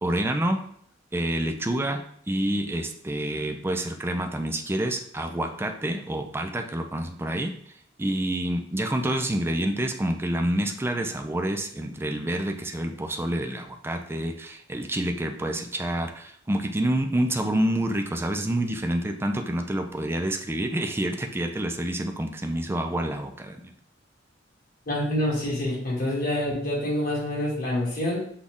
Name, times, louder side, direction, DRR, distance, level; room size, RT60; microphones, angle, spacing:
voice 1, 0.0-0.6 1.1-2.0 2.3-7.5 8.0-23.7, right 1 dB, 15° right, 5 dB, 0.4 m, -28 dB
voice 2, 24.9-28.2, left 1 dB, 50° left, -4 dB, 1.8 m, -27 dB
6.2 x 2.3 x 3.6 m, 0.63 s
head